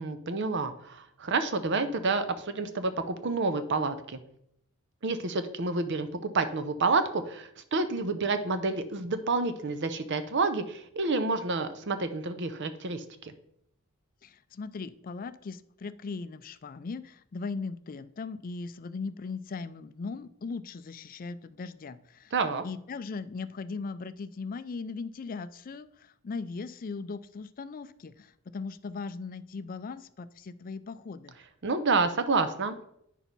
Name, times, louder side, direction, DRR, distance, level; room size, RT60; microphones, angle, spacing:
voice 1, 0.0-4.2 5.0-13.3 22.3-22.6 31.6-32.8, right 3 dB, 60° right, 10 dB, 0.7 m, -29 dB
voice 2, 14.2-22.3 22.6-31.3, left 4 dB, 40° left, 14 dB, 0.4 m, -38 dB
9.0 x 6.2 x 4.0 m, 0.73 s
head